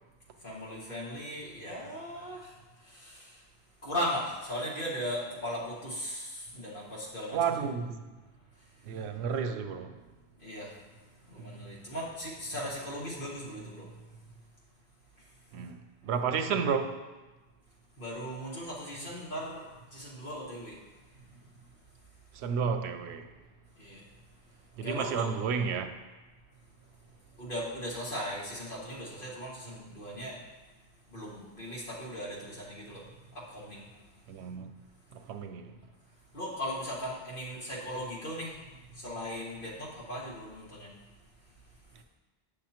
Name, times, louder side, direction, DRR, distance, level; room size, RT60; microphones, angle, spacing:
voice 1, 0.4-2.5 2.8-3.4 3.8-7.5 10.4-10.7 11.3-13.9 18.0-20.8 23.8-24.0 24.8-25.3 27.4-30.4 31.1-33.0 33.3-33.8 36.3-38.6 39.0-40.9, equal, 55° left, 1.9 m, -38 dB
voice 2, 7.3-8.0 8.8-10.0 11.4-11.7 15.5-15.8 16.0-17.0 22.3-23.3 24.8-25.9 34.3-34.7 35.1-35.7, right 6 dB, 80° right, 0.8 m, -31 dB
8.4 x 6.4 x 2.9 m
omnidirectional pair, 1.1 m